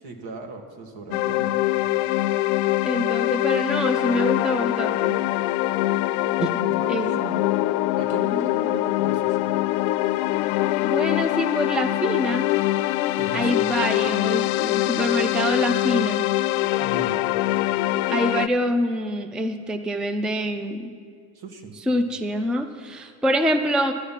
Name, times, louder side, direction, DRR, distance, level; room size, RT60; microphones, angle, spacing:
voice 1, 0.0-1.6 6.7-7.5 8.0-9.5 13.2-13.7 16.8-17.2 21.3-21.8, right 4 dB, 70° right, 4 dB, 1.7 m, -38 dB
sound 1, 1.1-18.5, left 16 dB, 90° left, 0.5 m, -23 dB
voice 2, 2.8-5.1 6.4-6.6 6.9-7.3 8.3-8.5 10.8-12.5 13.3-16.3 18.1-20.9 21.9-23.9, equal, ahead, 8 dB, 0.4 m, -25 dB
11.0 x 10.5 x 5.8 m, 2.2 s
cardioid pair, 120°, 40 cm